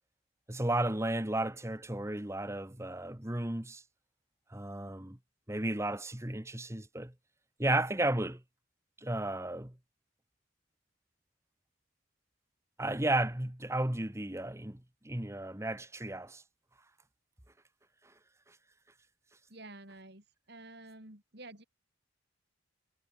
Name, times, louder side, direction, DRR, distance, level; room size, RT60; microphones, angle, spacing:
voice 1, 0.5-3.8 4.5-5.2 5.5-7.1 7.6-8.4 9.0-9.8 12.8-16.4, right 1 dB, 15° right, 1.3 m, -33 dB
voice 2, 19.5-21.6, right 2 dB, 55° right, 6.6 m, -50 dB
head